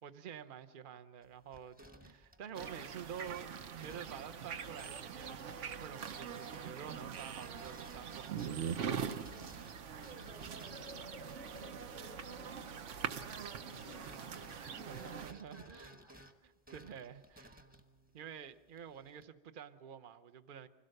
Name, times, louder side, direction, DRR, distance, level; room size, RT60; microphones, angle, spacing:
voice 1, 0.0-3.5 3.8-8.5 14.9-16.0 16.4-17.7 18.1-20.7, right 8 dB, 50° right, 0.9 m, -49 dB
sound 1, 1.2-12.9 13.1-19.2, equal, 10° right, 1.1 m, -60 dB
sound 2, 2.5-15.3, right 7 dB, 85° right, 1.2 m, -43 dB
voice 2, 10.0-11.2 11.6-12.8 13.6-16.3, right 1 dB, 35° right, 2.2 m, -57 dB
sound 3, 10.7-14.4 14.8-14.9, left 1 dB, 15° left, 0.4 m, -56 dB
25.5 x 17.0 x 6.5 m
omnidirectional pair, 1.2 m